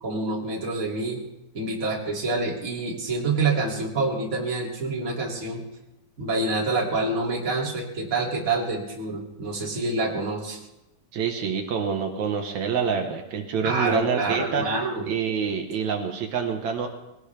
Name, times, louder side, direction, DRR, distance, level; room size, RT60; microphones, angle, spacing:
voice 1, 0.0-1.2 1.5-5.6 6.2-10.6 13.6-15.0, right 3 dB, 25° right, -2 dB, 3.0 m, -27 dB
voice 2, 11.1-14.7 15.1-16.9, right 6 dB, 65° right, 4 dB, 2.6 m, -26 dB
22.0 x 17.5 x 3.4 m, 0.94 s
omnidirectional pair, 3.7 m